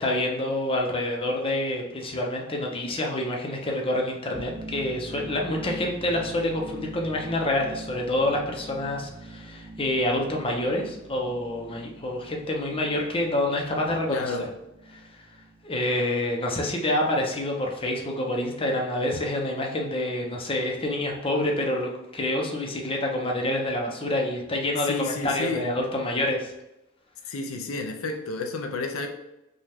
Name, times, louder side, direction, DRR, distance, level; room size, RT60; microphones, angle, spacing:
voice 1, 0.0-14.3 14.9-15.0 15.6-26.5, left 1 dB, 25° left, 0 dB, 0.7 m, -27 dB
sound 1, 4.3-15.8, right 2 dB, 10° right, 1.0 m, -43 dB
voice 2, 14.1-14.5 24.8-25.7 27.3-29.1, left 3 dB, 80° left, 4 dB, 0.5 m, -31 dB
5.4 x 2.4 x 3.4 m, 0.92 s
head